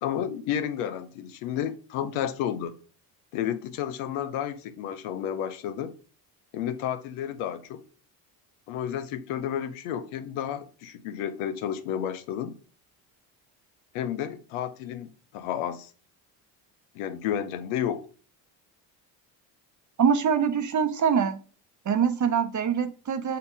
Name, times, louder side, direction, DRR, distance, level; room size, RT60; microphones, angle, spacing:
voice 1, 0.0-2.7 3.3-5.9 6.5-7.8 8.7-12.6 13.9-15.9 16.9-18.1, left 9 dB, 75° left, 0.8 m, -31 dB
voice 2, 20.0-21.4 21.8-23.4, right 7 dB, 35° right, 0.9 m, -24 dB
6.7 x 2.8 x 5.1 m
hypercardioid pair, 65°, 49 cm